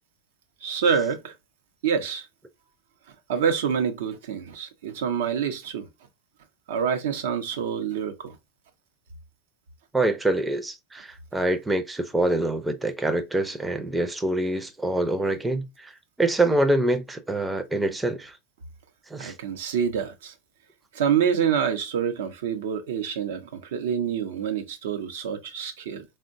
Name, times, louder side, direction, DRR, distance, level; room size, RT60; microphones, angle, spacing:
voice 1, 0.6-1.3 1.8-2.3 3.3-5.9 6.7-8.4 19.2-20.3 20.9-26.0, right 7 dB, 85° right, 0.6 m, -27 dB
voice 2, 9.9-15.9 16.2-18.3 19.1-19.3, right 1 dB, 10° right, 0.4 m, -25 dB
3.6 x 2.1 x 2.5 m
supercardioid pair, 115°, 0 cm